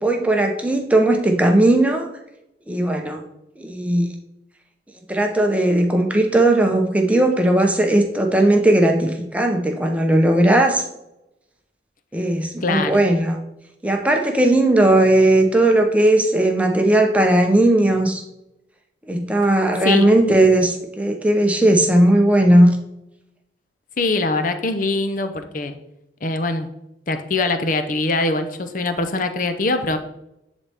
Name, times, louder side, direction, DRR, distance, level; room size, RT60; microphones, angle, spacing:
voice 1, 0.0-2.1 2.7-3.2 3.6-4.1 5.1-10.8 12.1-13.4 13.8-18.2 19.1-22.7, right 1 dB, 10° right, 3 dB, 0.8 m, -17 dB
voice 2, 12.6-13.0 19.8-20.1 24.0-25.8 26.2-26.7 27.1-30.0, left 3 dB, 45° left, 8 dB, 0.7 m, -22 dB
10.5 x 4.1 x 3.5 m, 0.85 s
head